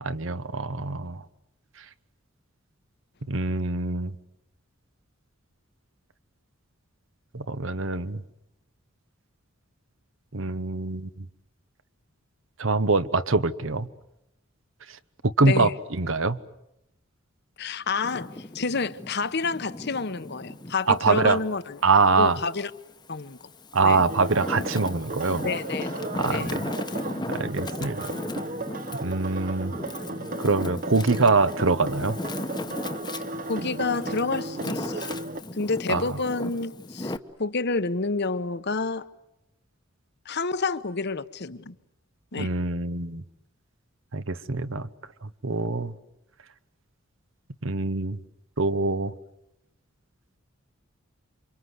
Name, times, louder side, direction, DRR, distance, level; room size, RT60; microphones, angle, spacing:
voice 1, 0.0-1.2 3.3-4.1 7.3-8.2 10.3-11.3 12.6-13.9 15.4-16.4 20.9-21.4 21.8-22.4 23.7-25.5 26.1-26.6 27.3-28.1 29.0-29.8 30.4-32.2 35.9-36.2 42.4-43.2 44.1-44.9 45.2-45.9 47.6-48.2 48.6-49.1, right 3 dB, 65° right, 1.1 m, -24 dB
voice 2, 15.4-15.7 17.6-21.8 22.2-22.7 23.1-23.4 23.8-24.0 25.4-25.9 26.3-26.5 33.5-35.1 35.6-37.1 37.4-39.1 40.3-41.7 42.3-42.5, left 4 dB, 55° left, 1.0 m, -29 dB
Wind, 17.9-20.8 21.3-22.6 23.2-37.2, left 2 dB, 20° left, 1.0 m, -37 dB
sound 1, 24.1-35.4, right 2 dB, 40° right, 1.0 m, -35 dB
28.5 x 25.5 x 8.0 m
head